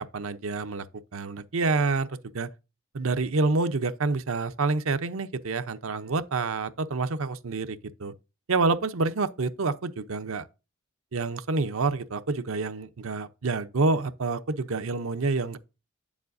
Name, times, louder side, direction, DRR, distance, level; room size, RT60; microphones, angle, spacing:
voice 1, 0.1-0.9 1.1-2.5 2.9-8.1 8.5-10.5 11.1-15.6, right 3 dB, 85° right, 0.8 m, -28 dB
9.4 x 7.3 x 2.6 m
head